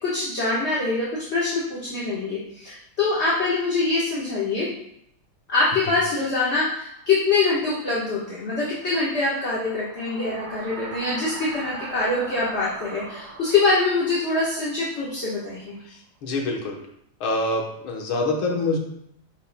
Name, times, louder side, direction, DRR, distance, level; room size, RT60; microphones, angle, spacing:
voice 1, 0.0-4.7 5.5-15.8, left 3 dB, 35° left, -7 dB, 1.5 m, -24 dB
sound 1, 7.1-15.8, right 3 dB, 60° right, 1.3 m, -41 dB
voice 2, 15.8-16.8 17.2-18.8, left 2 dB, 75° left, 1 dB, 2.0 m, -26 dB
9.8 x 6.1 x 2.3 m, 0.74 s
omnidirectional pair, 2.3 m